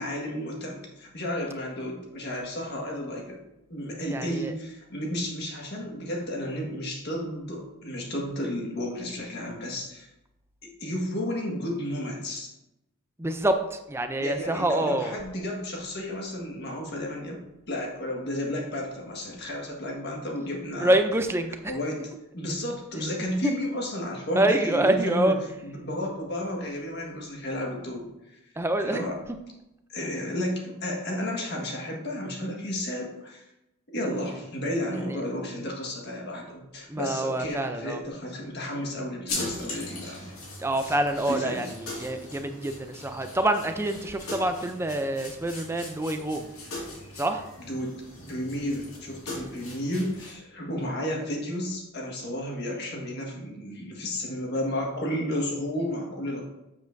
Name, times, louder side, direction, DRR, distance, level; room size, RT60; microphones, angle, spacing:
voice 1, 0.0-3.4 3.7-10.1 10.8-12.5 14.2-17.4 17.7-20.9 21.7-25.3 25.6-28.1 28.8-29.2 29.9-33.4 33.9-40.3 41.3-41.6 47.6-47.9 48.2-56.4, left 1 dB, 50° left, 0 dB, 1.6 m, -32 dB
voice 2, 4.1-4.5 13.2-15.1 20.8-21.8 24.4-25.3 28.6-29.0 35.1-35.2 36.9-38.0 40.6-46.5 47.2-47.4, right 1 dB, 10° right, 7 dB, 0.4 m, -26 dB
sound 1, 39.3-50.3, left 2 dB, 75° left, 2.2 m, -39 dB
7.7 x 7.1 x 2.6 m, 0.90 s
head